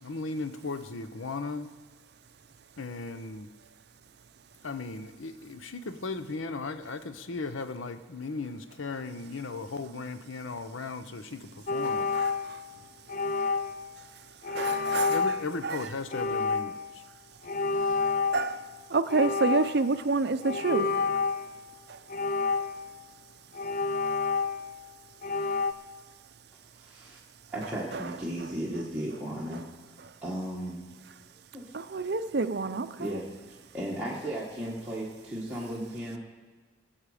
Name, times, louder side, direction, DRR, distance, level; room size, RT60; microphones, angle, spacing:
voice 1, 0.0-1.7 2.8-3.5 4.6-12.1 12.7-12.9 15.1-17.0, left 3 dB, 80° left, 10 dB, 0.8 m, -36 dB
sound 1, 11.7-12.7 13.1-13.9 14.4-15.5 16.1-16.9 17.4-18.7 19.1-19.9 20.4-21.5 22.1-23.0 23.5-24.8 25.2-25.7, left 4 dB, 45° left, 0.4 m, -29 dB
voice 2, 11.8-12.6 14.5-15.2 15.6-15.8 18.3-18.6 18.9-20.9 21.9-22.0 27.9-28.0 31.7-33.1, right 3 dB, 55° right, 11 dB, 0.5 m, -28 dB
voice 3, 26.7-27.2 27.5-29.6 30.2-30.8 31.5-31.6 33.0-36.2, right 1 dB, 5° right, -8 dB, 1.5 m, -35 dB
20.5 x 7.3 x 4.9 m, 1.4 s
head